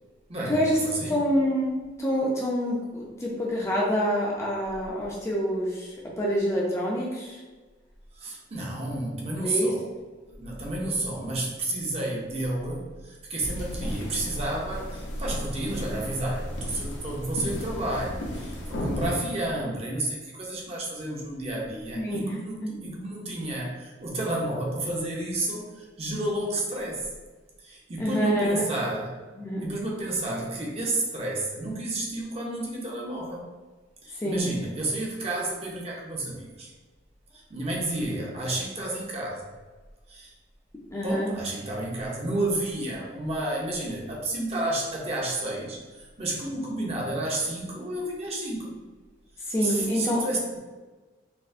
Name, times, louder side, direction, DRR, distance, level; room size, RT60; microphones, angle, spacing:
voice 1, 0.3-1.2 8.1-9.9 10.3-27.1 27.6-29.1 29.6-33.5 34.0-36.7 37.3-39.5 40.1-40.3 41.0-48.8 49.6-50.6, right 1 dB, 35° right, -2 dB, 0.6 m, -31 dB
voice 2, 1.1-7.4 9.4-9.7 21.9-22.3 22.6-22.7 28.0-28.7 29.4-29.7 34.1-34.5 40.9-41.3 49.5-50.2, equal, 15° left, -4 dB, 0.4 m, -26 dB
sound 1, 13.4-19.1, equal, 90° left, 0.6 m, -34 dB
4.1 x 2.0 x 2.5 m, 1.3 s
head